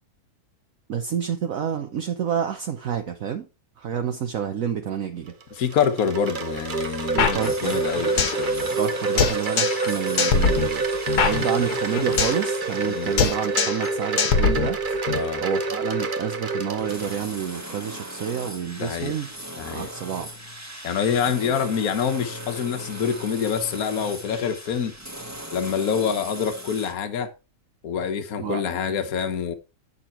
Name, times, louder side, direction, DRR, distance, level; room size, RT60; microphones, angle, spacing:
voice 1, 0.9-3.5 3.8-5.3 7.1-7.8 8.7-10.9 11.2-14.8 15.4-19.3 19.7-20.3 28.4-28.6, right 8 dB, 60° right, 1.2 m, -29 dB
Wind chime, 5.3-17.5, right 3 dB, 40° right, 1.0 m, -27 dB
voice 2, 5.5-8.7 12.9-13.2 15.1-15.4 18.8-19.1 19.6-19.9 20.8-24.9 25.5-27.3 27.8-29.5, left 7 dB, 65° left, 1.5 m, -26 dB
sound 1, 7.2-8.5 8.7-8.8 9.2-9.9 10.2-12.5 12.7-12.9 13.2-13.9 14.2-15.2, left 5 dB, 85° left, 1.7 m, -23 dB
sound 2, 7.4-14.6 14.9-15.0 16.0-26.9, equal, 10° right, 1.6 m, -39 dB
8.7 x 6.8 x 4.3 m
omnidirectional pair, 1.7 m